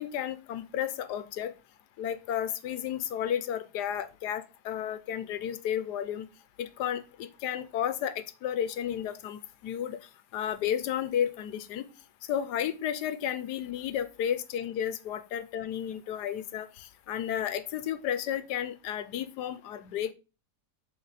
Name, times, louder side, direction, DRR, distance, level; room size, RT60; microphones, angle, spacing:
voice 1, 0.0-1.5 2.0-6.3 6.6-10.0 10.3-11.9 12.3-20.1, left 10 dB, 85° left, 12 dB, 1.3 m, -32 dB
7.6 x 4.0 x 4.0 m, 0.31 s
omnidirectional pair, 1.7 m